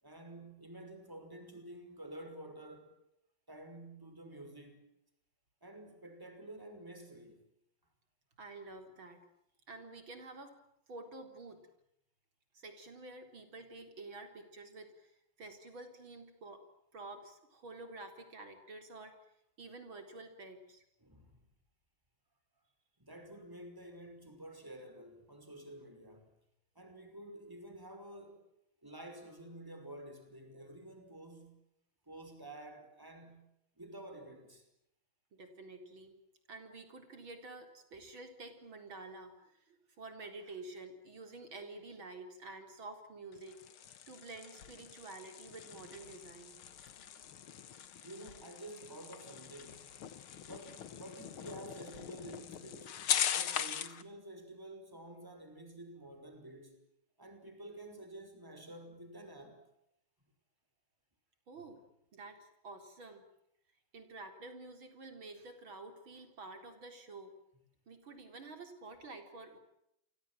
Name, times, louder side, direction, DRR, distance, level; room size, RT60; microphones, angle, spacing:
voice 1, 0.0-3.0 3.5-4.9 5.6-7.5 21.0-21.3 23.0-26.3 26.8-28.5 28.8-31.6 32.1-33.5 33.8-34.6 48.0-49.9 50.5-53.0 53.3-56.8 57.2-59.6, right 1 dB, 10° right, 5.6 m, -50 dB
voice 2, 8.4-9.3 9.7-10.6 10.9-11.6 12.5-15.1 15.4-16.7 16.9-19.2 19.6-20.8 35.3-36.2 36.5-46.5 53.0-53.1 61.5-61.8 62.1-63.2 63.9-67.3 67.9-69.6, right 2 dB, 70° right, 4.9 m, -49 dB
sound 1, 43.3-54.0, left 9 dB, 80° left, 2.2 m, -40 dB
29.5 x 24.0 x 7.7 m
omnidirectional pair, 2.3 m